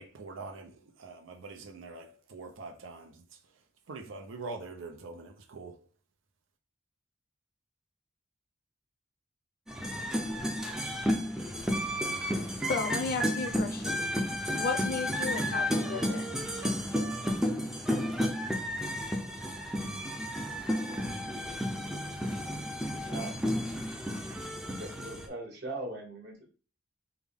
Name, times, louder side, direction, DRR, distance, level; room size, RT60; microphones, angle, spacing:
voice 1, 0.0-3.2 3.9-5.8, right 3 dB, 90° right, 0.6 m, -44 dB
sound 1, 9.7-25.3, equal, 5° right, 0.4 m, -32 dB
voice 2, 12.7-14.1 14.5-16.3, left 4 dB, 55° left, 0.5 m, -34 dB
voice 3, 23.0-23.4 24.6-26.5, right 2 dB, 55° right, 1.5 m, -40 dB
3.5 x 2.3 x 3.4 m
head